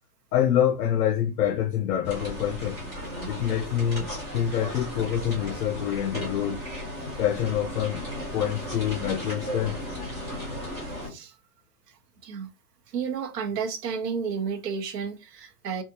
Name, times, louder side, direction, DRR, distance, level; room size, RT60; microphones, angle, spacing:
voice 1, 0.3-2.8 3.3-6.6 7.2-8.0 8.3-9.8, left 10 dB, 70° left, 0.7 m, -26 dB
sound 1, 2.0-11.1, equal, 10° right, 0.4 m, -35 dB
voice 2, 12.9-15.8, right 6 dB, 85° right, 1.0 m, -31 dB
3.5 x 2.4 x 2.7 m
hypercardioid pair, 155°, 47 cm